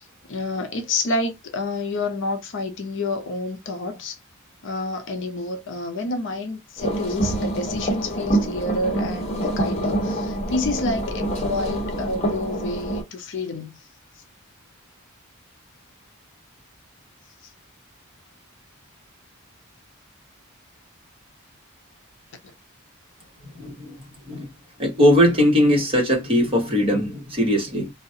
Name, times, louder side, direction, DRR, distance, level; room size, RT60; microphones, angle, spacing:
voice 1, 0.0-4.2 4.6-13.8, left 2 dB, 60° left, 0.6 m, -29 dB
sound 1, 6.8-13.0, right 1 dB, 30° left, 0.9 m, -26 dB
voice 2, 23.5-23.9 24.3-24.5 24.8-27.9, equal, 25° right, 1.0 m, -19 dB
2.4 x 2.0 x 2.6 m
head